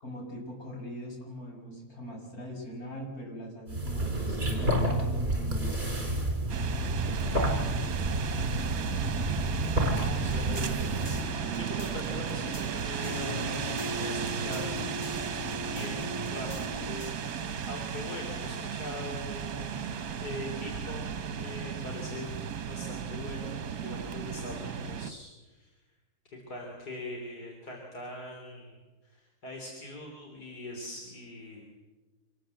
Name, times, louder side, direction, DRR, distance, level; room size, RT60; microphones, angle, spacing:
voice 1, 0.0-6.2, equal, 70° left, -1 dB, 6.9 m, -41 dB
sound 1, 3.7-11.4, right 1 dB, 40° right, 4.8 m, -30 dB
sound 2, 6.5-25.1, right 7 dB, 70° right, 1.6 m, -35 dB
voice 2, 8.6-8.9 10.2-10.8 11.5-14.8 15.6-16.5 17.7-19.9 20.2-21.0 21.4-25.7 26.2-28.8 29.1-31.6, left 1 dB, 85° left, 0 dB, 4.1 m, -42 dB
sound 3, 10.2-17.1, left 2 dB, 25° left, 2.3 m, -40 dB
26.5 x 20.5 x 8.0 m, 1.2 s
omnidirectional pair, 1.7 m